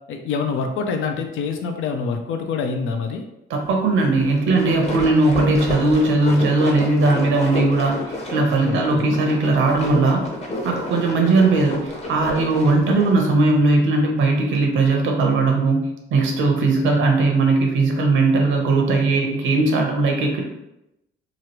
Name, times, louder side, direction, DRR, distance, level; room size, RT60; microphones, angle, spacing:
voice 1, 0.1-3.2 8.6-9.2, left 5 dB, 80° left, 5 dB, 0.5 m, -26 dB
voice 2, 3.5-10.3 10.6-20.4, right 3 dB, 75° right, 2 dB, 0.8 m, -19 dB
sound 1, 4.3-13.2, left 1 dB, 35° left, 0.8 m, -30 dB
3.0 x 2.4 x 2.9 m, 0.89 s
cardioid pair, 90°, 20 cm